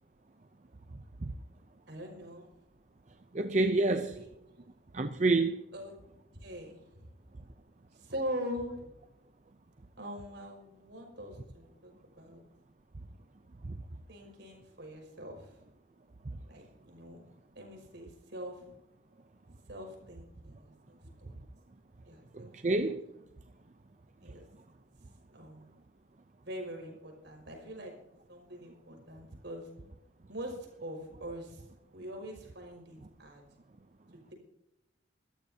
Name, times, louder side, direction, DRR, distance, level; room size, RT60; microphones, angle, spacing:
voice 1, 1.9-2.5 3.8-4.6 5.7-5.9 6.4-7.1 7.9-8.9 10.0-12.4 14.1-15.6 16.5-17.2 17.5-18.6 19.5-21.3 22.1-22.5 24.2-24.5 25.3-25.7 26.5-27.9 28.3-29.7 30.3-31.7 31.9-33.4, equal, 70° right, 5.4 m, -43 dB
voice 2, 3.3-4.2 4.9-5.6 13.6-13.8 22.3-23.0, right 2 dB, 40° right, 0.6 m, -28 dB
25.5 x 13.5 x 2.8 m
head